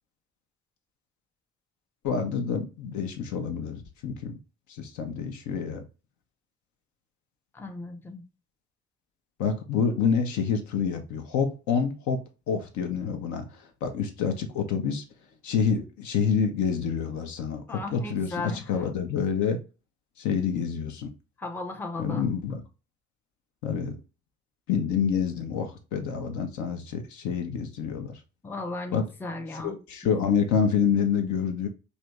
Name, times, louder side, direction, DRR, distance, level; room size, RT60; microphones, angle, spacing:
voice 1, 2.0-4.3 4.7-5.8 9.4-12.2 12.5-15.0 15.4-19.6 20.2-21.1 22.0-22.6 23.6-24.0 24.7-28.2 28.9-29.1 29.6-31.7, left 6 dB, 60° left, 0.7 m, -27 dB
voice 2, 7.5-8.2 17.7-18.8 21.4-22.3 28.4-29.8, left 2 dB, 5° left, 0.5 m, -36 dB
3.2 x 2.6 x 3.0 m
figure-of-eight pair, 40°, 34 cm